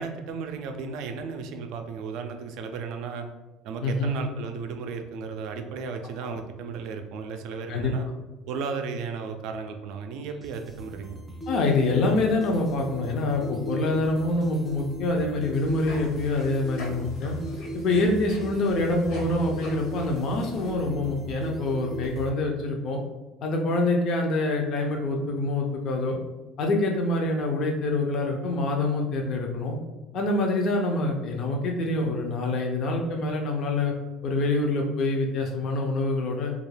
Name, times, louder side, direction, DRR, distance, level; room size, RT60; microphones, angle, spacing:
voice 1, 0.0-3.3 3.6-8.1 8.5-11.2, right 5 dB, 70° right, 6 dB, 0.3 m, -34 dB
voice 2, 3.8-4.2 6.2-6.4 7.7-7.9 11.5-17.4 17.7-23.0 23.4-26.2 26.6-29.8 30.1-33.9 34.2-36.5, left 2 dB, 55° left, 1 dB, 0.4 m, -26 dB
sound 1, 10.3-22.3, right 1 dB, ahead, 0.5 m, -38 dB
sound 2, 15.5-20.7, equal, 70° left, 0.8 m, -41 dB
2.3 x 2.2 x 3.2 m, 1.1 s
cardioid pair, 120°, 0 cm